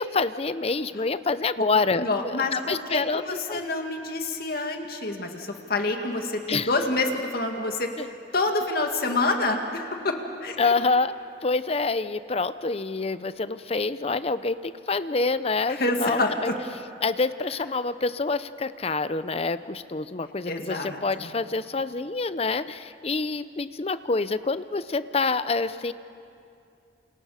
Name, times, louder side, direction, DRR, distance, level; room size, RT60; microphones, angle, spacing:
voice 1, 0.0-3.6 6.5-6.7 8.0-8.1 10.6-11.1 11.4-16.5 17.0-25.9, left 3 dB, 35° left, 14 dB, 0.6 m, -27 dB
voice 2, 2.0-7.9 8.3-10.7 15.8-16.3 20.5-21.3, left 2 dB, 60° left, 3 dB, 2.1 m, -27 dB
28.5 x 28.5 x 5.0 m, 2.5 s
head